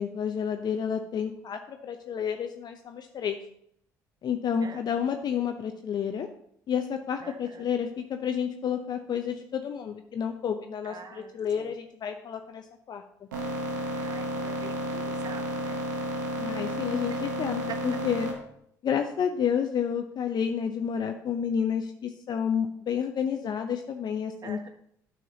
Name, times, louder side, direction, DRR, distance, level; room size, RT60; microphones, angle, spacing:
voice 1, 0.0-3.4 4.2-6.3 6.7-13.0 16.4-18.3 18.8-24.7, left 7 dB, 45° left, 6 dB, 0.6 m, -30 dB
voice 2, 7.2-7.7 10.8-11.7 13.9-15.8 17.1-17.2 17.7-17.8 24.4-24.7, right 5 dB, 40° right, 6 dB, 1.1 m, -44 dB
sound 1, 13.3-18.3, equal, 85° right, 1.3 m, -32 dB
9.0 x 5.7 x 2.8 m, 0.70 s
hypercardioid pair, 60°, 10 cm